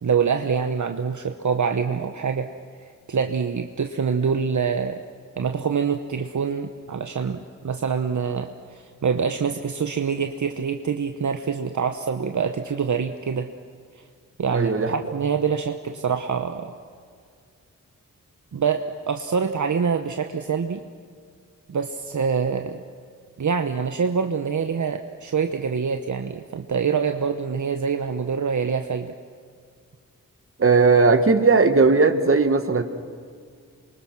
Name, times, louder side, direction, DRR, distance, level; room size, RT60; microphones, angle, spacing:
voice 1, 0.0-2.5 3.1-5.0 5.4-13.5 14.4-16.7 18.5-20.8 21.7-22.8 23.4-29.1, right 6 dB, 60° right, 6 dB, 1.1 m, -25 dB
voice 2, 14.5-15.0 30.6-32.8, right 4 dB, 40° right, 8 dB, 1.7 m, -17 dB
27.5 x 24.0 x 6.1 m, 2.1 s
wide cardioid pair, 70°, 33 cm